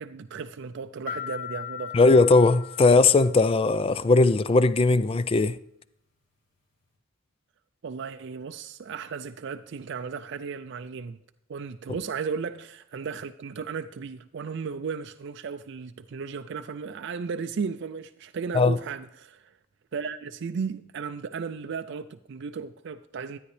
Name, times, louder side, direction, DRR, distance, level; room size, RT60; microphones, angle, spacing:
voice 1, 0.0-2.0 7.8-11.2 11.5-19.5 19.9-23.4, right 5 dB, 60° right, 0.4 m, -35 dB
sound 1, 1.1-3.7, left 9 dB, 70° left, 3.1 m, -39 dB
voice 2, 1.9-5.6 18.5-18.8, left 3 dB, 25° left, 0.4 m, -19 dB
12.5 x 9.4 x 3.3 m
head